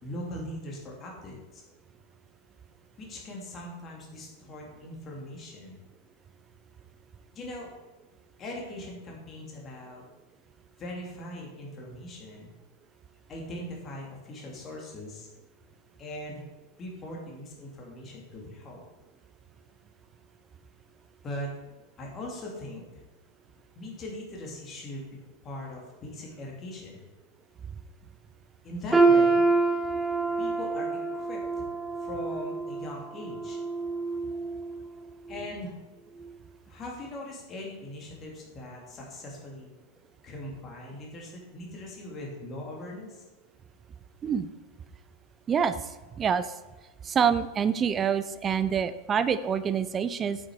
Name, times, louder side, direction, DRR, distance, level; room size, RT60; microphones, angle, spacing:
voice 1, 0.0-1.6 3.0-5.8 7.3-7.7 8.4-10.0 10.8-12.5 13.3-15.3 16.0-16.4 16.8-18.8 21.2-21.5 22.0-23.0 23.7-25.1 25.4-27.1 28.6-29.4 30.4-31.6 32.0-33.6 35.3-35.7 36.7-39.7 40.2-43.2, left 1 dB, 25° left, -1 dB, 2.6 m, -40 dB
sound 1, 28.9-34.9 35.3-35.5 36.2-36.3, right 3 dB, 5° right, 1.1 m, -26 dB
voice 2, 47.0-50.4, right 7 dB, 25° right, 14 dB, 0.6 m, -26 dB
8.4 x 8.1 x 4.6 m, 1.1 s
figure-of-eight pair, 90°, 0 cm